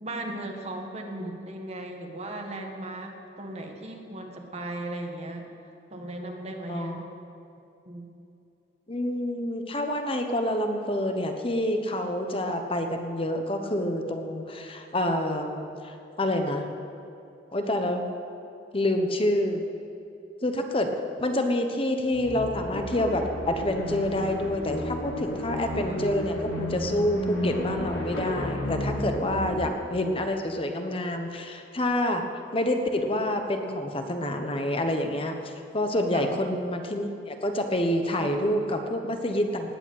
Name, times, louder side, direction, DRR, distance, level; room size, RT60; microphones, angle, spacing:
voice 1, 0.0-5.5 5.9-7.0 7.9-8.1 25.9-26.0 29.4-29.7 36.1-36.3, right 1 dB, 35° right, 3 dB, 1.7 m, -37 dB
voice 2, 6.7-7.1 8.9-16.7 17.5-18.0 18.7-19.6 20.4-20.9 21.2-32.2 32.5-39.7, left 1 dB, 30° left, 5 dB, 1.1 m, -27 dB
sound 1, 22.1-29.8, left 1 dB, 90° left, 3.2 m, -32 dB
19.0 x 8.2 x 8.7 m, 2.7 s
head